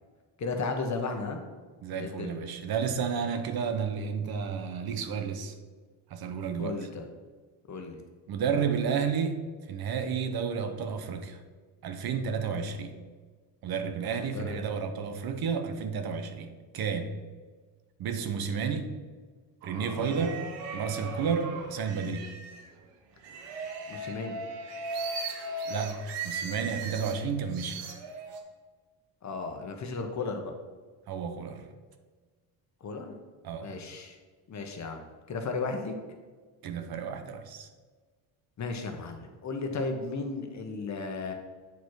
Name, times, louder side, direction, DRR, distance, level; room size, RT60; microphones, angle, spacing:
voice 1, 0.4-1.4 1.9-2.4 6.6-7.1 7.7-8.0 14.2-14.6 19.9-20.2 23.9-24.4 29.2-30.5 32.8-33.2 33.6-34.2 34.5-35.9 38.6-41.3, left 3 dB, 40° left, 4 dB, 1.2 m, -35 dB
voice 2, 1.8-5.5 6.1-6.8 8.3-9.4 9.7-11.4 11.8-13.0 13.6-17.2 18.0-18.9 19.6-20.4 20.7-22.3 25.7-27.8 31.1-31.7 33.4-33.7 36.6-37.7, right 6 dB, 60° right, 7 dB, 0.9 m, -31 dB
sound 1, 19.6-22.7 23.2-27.2 27.5-28.4, right 3 dB, 80° right, 1.2 m, -37 dB
8.1 x 4.7 x 4.7 m, 1.4 s
cardioid pair, 105°, 42 cm